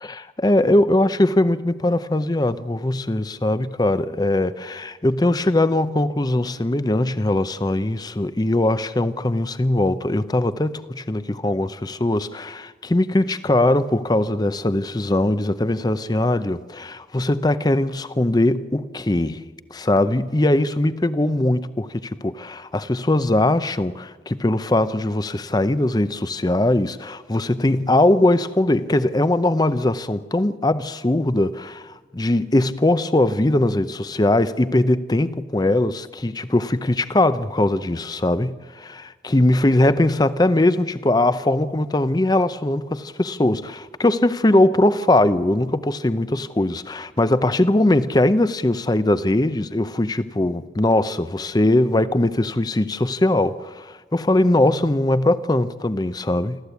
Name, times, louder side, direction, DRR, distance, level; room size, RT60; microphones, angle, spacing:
voice 1, 0.1-19.4 19.7-56.6, left 1 dB, 25° left, 0.6 m, -20 dB
27.5 x 13.5 x 8.2 m
head